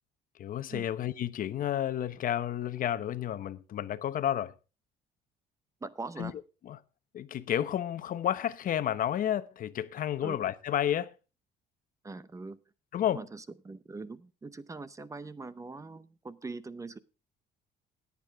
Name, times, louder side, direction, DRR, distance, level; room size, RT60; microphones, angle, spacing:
voice 1, 0.4-4.5 6.2-6.3 6.7-6.8 7.1-11.1 12.9-13.2, left 10 dB, 55° left, 1.0 m, -31 dB
voice 2, 5.8-6.4 10.2-10.4 12.0-12.6 13.1-17.0, right 3 dB, 20° right, 0.7 m, -42 dB
17.0 x 8.5 x 3.5 m
cardioid pair, 110°, 17 cm